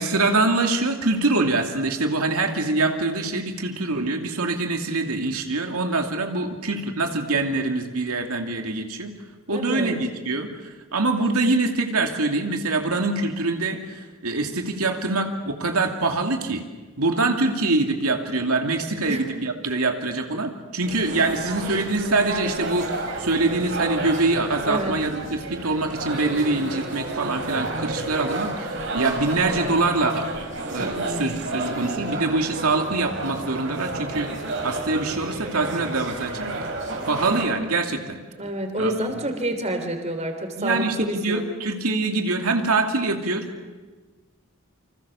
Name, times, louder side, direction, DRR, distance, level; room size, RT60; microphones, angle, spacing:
voice 1, 0.0-9.1 9.5-16.6 17.0-30.3 30.7-34.3 34.6-36.5 37.1-38.2 38.8-39.2 40.6-43.5, right 3 dB, 90° right, 4 dB, 2.6 m, -24 dB
voice 2, 9.5-9.9 17.2-17.5 19.1-19.2 24.7-25.0 30.8-31.5 38.4-41.4, right 1 dB, 30° right, 6 dB, 3.1 m, -29 dB
sound 1, 20.8-37.4, right 2 dB, 60° right, 5.5 m, -31 dB
29.0 x 25.5 x 7.1 m, 1.3 s
head